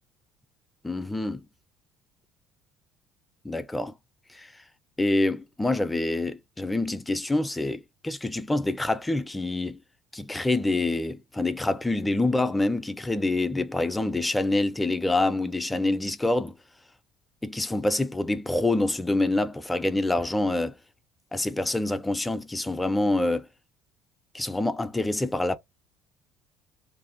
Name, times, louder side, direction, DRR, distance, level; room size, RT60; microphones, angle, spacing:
voice 1, 0.8-1.4 3.4-3.9 4.3-4.5 5.0-9.8 10.1-16.5 17.4-20.8 21.3-23.5 24.3-25.6, left 2 dB, 10° left, 0.4 m, -26 dB
2.5 x 2.3 x 3.7 m
cardioid pair, 110°, 0 cm